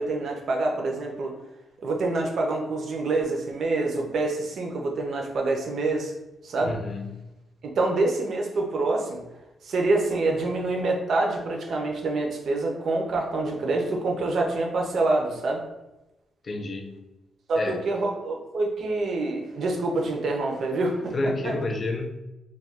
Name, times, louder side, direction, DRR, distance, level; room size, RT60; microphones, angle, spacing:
voice 1, 0.0-1.3 1.8-6.1 6.4-6.8 7.6-9.2 9.6-15.6 17.5-21.6, right 2 dB, 55° right, 1 dB, 0.5 m, -26 dB
voice 2, 6.6-7.4 16.4-17.0 17.6-17.8 21.1-22.2, left 2 dB, 30° left, 4 dB, 0.3 m, -30 dB
2.3 x 2.2 x 3.4 m, 0.99 s
cardioid pair, 150°, 0 cm